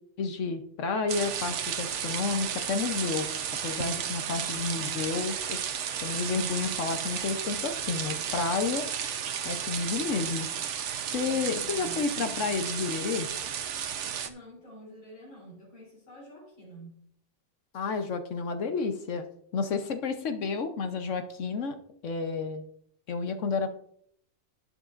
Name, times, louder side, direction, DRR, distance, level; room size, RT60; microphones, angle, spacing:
voice 1, 0.2-3.3 3.6-5.6 6.0-8.9 9.4-10.5 11.1-13.3 17.7-19.3 19.5-21.8 22.0-22.6 23.1-23.7, left 4 dB, 65° left, 7 dB, 1.1 m, -31 dB
sound 1, 1.1-14.3, right 8 dB, 60° right, 1.0 m, -33 dB
voice 2, 4.2-4.5 11.2-12.1 14.2-17.1, right 1 dB, 90° left, -7 dB, 4.0 m, -48 dB
11.5 x 10.0 x 2.5 m, 0.66 s
omnidirectional pair, 1.5 m